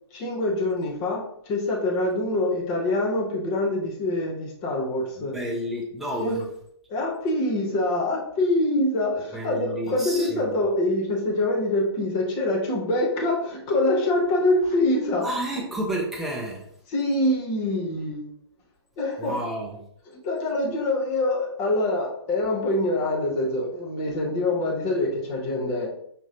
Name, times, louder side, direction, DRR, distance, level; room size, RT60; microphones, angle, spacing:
voice 1, 0.1-5.3 6.2-6.4 6.9-15.3 15.6-15.7 16.9-18.2 19.0-19.3 20.1-25.9, left 1 dB, 25° left, 1 dB, 0.9 m, -25 dB
voice 2, 5.3-6.4 9.3-10.6 15.2-16.6 19.2-19.7, right 1 dB, ahead, -3 dB, 0.7 m, -30 dB
5.1 x 2.9 x 2.8 m, 0.68 s
figure-of-eight pair, 130°, 14 cm